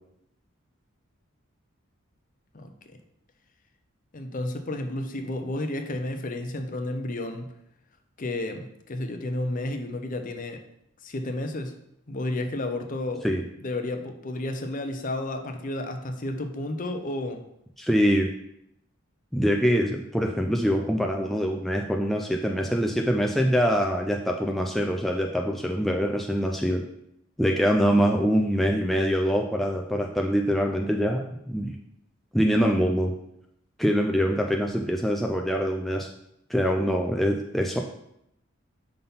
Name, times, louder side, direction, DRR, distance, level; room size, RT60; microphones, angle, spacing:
voice 1, 2.5-3.0 4.1-7.5 8.2-10.6 11.0-11.7 12.1-13.3 13.6-17.4, left 1 dB, 40° left, 6 dB, 0.6 m, -32 dB
voice 2, 17.8-18.3 19.3-26.8 27.4-31.8 32.3-33.1 33.8-36.1 36.5-37.8, equal, ahead, 1 dB, 0.3 m, -24 dB
5.6 x 3.8 x 5.4 m, 0.78 s
head